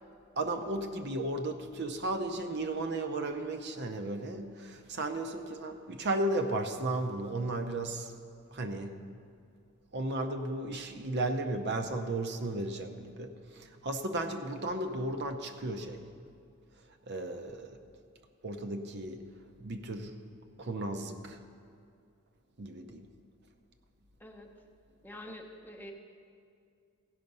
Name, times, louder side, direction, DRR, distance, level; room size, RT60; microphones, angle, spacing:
voice 1, 0.4-8.1 8.5-9.0 9.9-16.0 17.1-17.8 18.4-19.2 19.6-20.2 20.6-21.4 22.6-23.1, right 2 dB, 55° right, 6 dB, 0.7 m, -34 dB
voice 2, 25.0-25.9, left 1 dB, 10° left, 2 dB, 0.7 m, -46 dB
15.5 x 5.7 x 5.4 m, 2.3 s
head